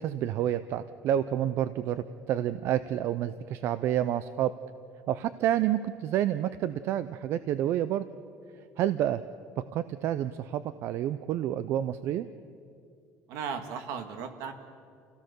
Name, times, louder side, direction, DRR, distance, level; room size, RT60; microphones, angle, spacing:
voice 1, 0.0-4.5 5.1-8.1 8.8-9.2 9.6-12.3, right 11 dB, 50° right, 14 dB, 0.5 m, -29 dB
voice 2, 13.3-14.5, right 6 dB, 70° right, 7 dB, 1.9 m, -36 dB
27.5 x 17.0 x 6.9 m, 2.4 s
cardioid pair, 165°, 5 cm